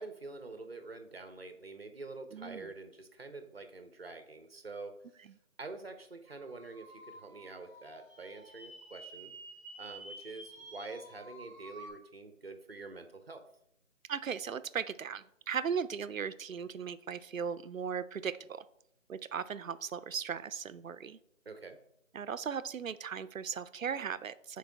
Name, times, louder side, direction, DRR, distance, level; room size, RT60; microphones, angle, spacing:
voice 1, 0.0-5.0 5.6-9.4 9.8-13.4 21.4-21.8, right 3 dB, 45° right, 8 dB, 0.9 m, -46 dB
voice 2, 2.3-2.7 14.1-18.6 19.1-21.2 22.1-24.6, right 7 dB, 75° right, 15 dB, 0.6 m, -37 dB
sound 1, 6.3-11.9, right 2 dB, 10° right, 1.1 m, -51 dB
10.0 x 4.6 x 3.4 m, 0.77 s
figure-of-eight pair, 170°, 40 cm